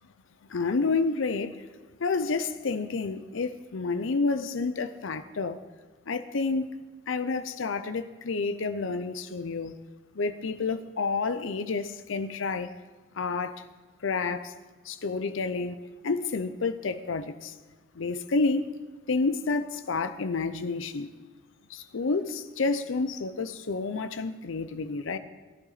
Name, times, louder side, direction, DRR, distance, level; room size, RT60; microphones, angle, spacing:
voice 1, 0.5-1.7 2.0-5.6 6.1-6.8 7.1-9.8 10.1-12.7 13.1-13.6 14.0-14.5 14.8-15.8 16.0-17.6 17.9-18.7 19.1-21.1 21.7-25.2, left 4 dB, 85° left, 10 dB, 0.6 m, -29 dB
17.5 x 11.0 x 4.1 m, 1.3 s
head